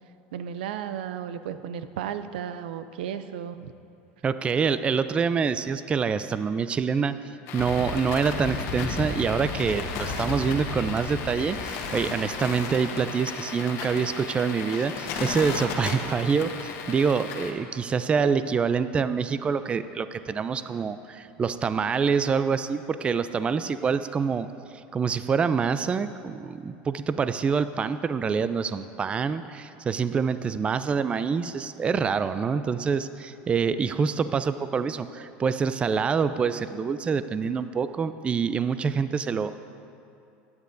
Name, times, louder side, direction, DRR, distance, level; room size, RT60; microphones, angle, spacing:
voice 1, 0.3-3.7 18.2-18.3, right 9 dB, 90° right, 11 dB, 0.4 m, -34 dB
voice 2, 4.2-7.1 7.5-24.5 24.9-39.5, right 6 dB, 20° right, 12 dB, 0.3 m, -26 dB
sound 1, 7.5-17.5, left 5 dB, 60° left, 1.2 m, -35 dB
sound 2, 7.6-12.6, left 2 dB, 75° left, 1.8 m, -35 dB
15.0 x 9.6 x 2.6 m, 2.6 s
supercardioid pair, 115°, 5 cm